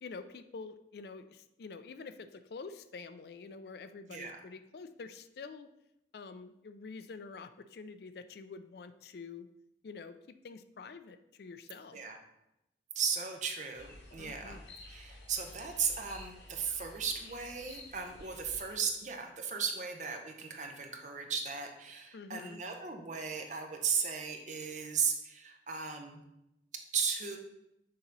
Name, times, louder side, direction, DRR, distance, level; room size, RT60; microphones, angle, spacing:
voice 1, 0.0-5.7 6.1-9.5 9.8-10.2 10.4-12.0 14.2-14.7 22.1-22.6, left 4 dB, 60° left, 11 dB, 0.4 m, -47 dB
voice 2, 4.1-4.4 11.9-12.2 12.9-14.6 14.9-26.2 26.9-27.4, right 6 dB, 45° right, 4 dB, 0.8 m, -36 dB
sound 1, 13.8-18.8, left 2 dB, 85° left, 1.3 m, -52 dB
6.6 x 2.9 x 5.3 m, 0.85 s
head